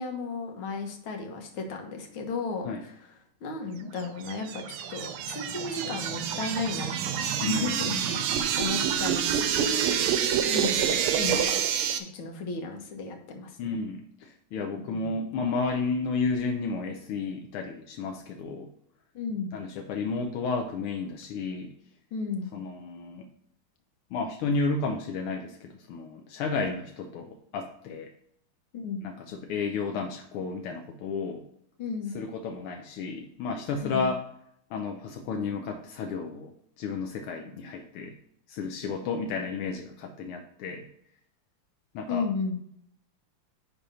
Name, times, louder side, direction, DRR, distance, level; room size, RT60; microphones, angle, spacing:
voice 1, 0.0-3.0 3.4-7.7 8.1-10.0 10.4-11.6 12.0-13.8 14.9-15.1 19.1-19.5 22.1-22.5 28.7-29.1 31.8-32.2 33.8-34.1 42.1-42.6, left 4 dB, 70° left, 3 dB, 2.0 m, -34 dB
sound 1, 4.0-12.0, right 8 dB, 90° right, 1.6 m, -27 dB
voice 2, 7.4-8.2 13.6-18.7 19.5-21.7 22.5-23.3 24.1-28.1 29.0-31.4 32.1-34.2 34.7-36.5 36.8-38.2 38.5-40.9 41.9-42.3, left 4 dB, 85° left, 3 dB, 1.7 m, -32 dB
10.0 x 3.5 x 5.6 m, 0.69 s
omnidirectional pair, 2.4 m